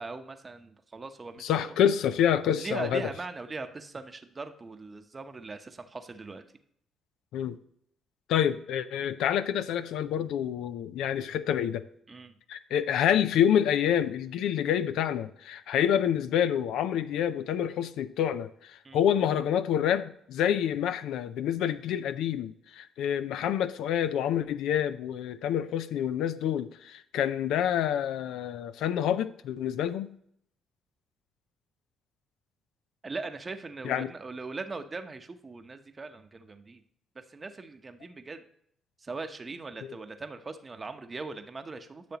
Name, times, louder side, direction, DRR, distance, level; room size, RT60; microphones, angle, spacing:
voice 1, 0.0-1.8 2.6-6.4 12.1-12.4 18.8-19.0 33.0-36.8 37.1-38.4 39.0-42.2, right 3 dB, 30° right, 8 dB, 0.9 m, -40 dB
voice 2, 1.4-3.0 7.3-7.6 8.3-11.8 12.5-30.1 33.8-34.1, left 9 dB, 80° left, 12 dB, 0.5 m, -27 dB
10.5 x 6.9 x 2.9 m, 0.69 s
supercardioid pair, 70°, 0 cm